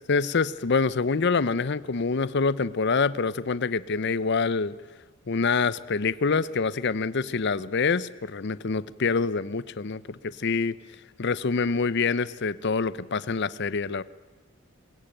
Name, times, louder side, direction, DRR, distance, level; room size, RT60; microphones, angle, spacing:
voice 1, 0.1-4.7 5.3-10.8 11.2-14.0, left 4 dB, 55° left, 0.6 m, -26 dB
21.5 x 20.5 x 9.0 m
head